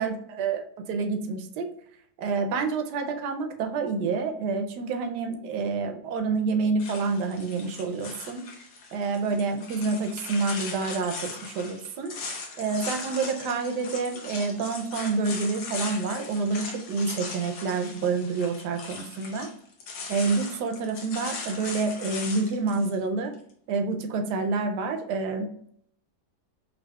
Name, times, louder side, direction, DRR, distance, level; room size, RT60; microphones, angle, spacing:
voice 1, 0.0-1.7 2.2-8.5 8.9-12.1 12.6-19.5 20.1-23.3 23.7-25.5, right 4 dB, 80° right, 6 dB, 1.1 m, -28 dB
sound 1, 6.8-22.9, left 4 dB, 65° left, 1.1 m, -39 dB
5.2 x 2.6 x 2.2 m, 0.64 s
omnidirectional pair, 1.8 m